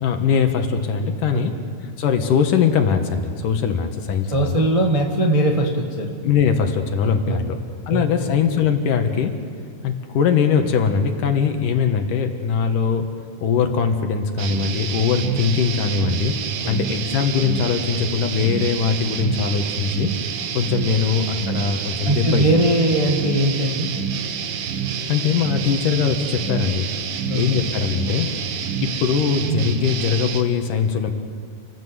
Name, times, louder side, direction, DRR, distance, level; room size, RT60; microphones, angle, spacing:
voice 1, 0.0-1.5 2.0-4.6 6.2-7.6 7.9-9.3 9.8-13.1 13.4-16.4 16.7-20.1 20.5-22.5 25.1-26.9 27.3-28.3 28.8-31.1, left 6 dB, 65° left, 6 dB, 2.8 m, -21 dB
voice 2, 4.3-6.1 7.2-7.4 7.9-8.3 16.6-16.7 22.0-23.9 27.2-27.6, right 1 dB, 20° right, 0 dB, 0.9 m, -20 dB
sound 1, 14.4-30.4, right 7 dB, 70° right, 2.8 m, -27 dB
29.0 x 18.5 x 8.1 m, 2.2 s
omnidirectional pair, 4.3 m